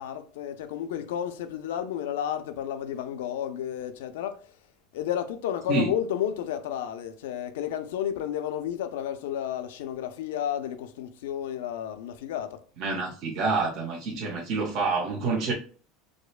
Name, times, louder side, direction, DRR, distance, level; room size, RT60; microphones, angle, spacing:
voice 1, 0.0-4.5 4.9-12.6, left 10 dB, 85° left, 0.5 m, -32 dB
voice 2, 12.8-15.5, right 3 dB, 50° right, 0.9 m, -27 dB
4.9 x 2.1 x 2.3 m
supercardioid pair, 125°, 0 cm